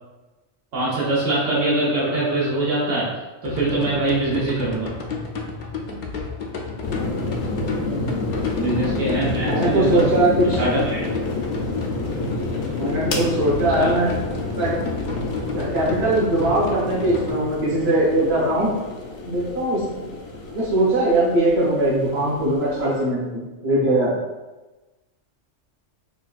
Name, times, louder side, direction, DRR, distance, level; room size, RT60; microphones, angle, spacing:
voice 1, 0.7-4.9 8.5-10.1 10.4-11.0 13.8-14.0, right 2 dB, 90° right, -8 dB, 1.3 m, -23 dB
sound 1, 3.4-17.3, left 4 dB, 60° left, 0.5 m, -32 dB
sound 2, 6.8-23.0, left 2 dB, 75° left, 0.9 m, -29 dB
voice 2, 7.8-8.1 9.4-10.6 12.8-14.1 14.6-14.7 15.5-18.7 19.2-19.8 20.5-24.1, right 1 dB, 60° right, -7 dB, 1.4 m, -21 dB
4.9 x 2.3 x 2.4 m, 1.2 s
omnidirectional pair, 1.2 m